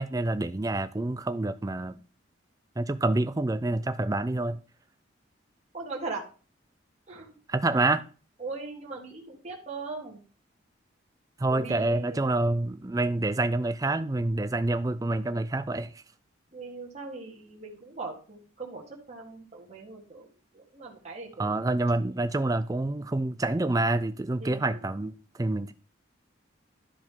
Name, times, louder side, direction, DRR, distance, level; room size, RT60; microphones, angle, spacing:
voice 1, 0.0-2.0 2.8-4.6 7.5-8.0 11.4-15.9 21.4-25.7, right 2 dB, 15° right, 0.4 m, -27 dB
voice 2, 5.7-6.2 7.1-7.3 8.4-10.2 11.5-12.2 16.5-18.8 19.1-20.3 20.5-21.6 24.4-24.8, right 3 dB, 35° right, 1.7 m, -39 dB
11.5 x 5.1 x 3.7 m
head